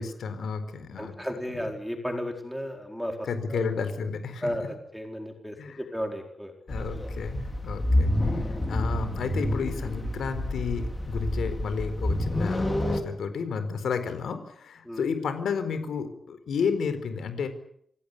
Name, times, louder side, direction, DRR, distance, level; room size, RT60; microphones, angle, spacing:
voice 1, 0.0-1.2 1.5-1.6 3.3-4.7 5.6-5.8 6.7-17.5, left 5 dB, 85° left, 10 dB, 4.3 m, -32 dB
voice 2, 1.0-3.7 4.4-6.5 12.3-12.5 14.8-15.0, equal, ahead, 2 dB, 4.5 m, -34 dB
sound 1, 6.7-13.0, left 1 dB, 15° left, 3.8 m, -28 dB
28.0 x 17.5 x 8.5 m, 0.69 s
wide cardioid pair, 175°, 0 cm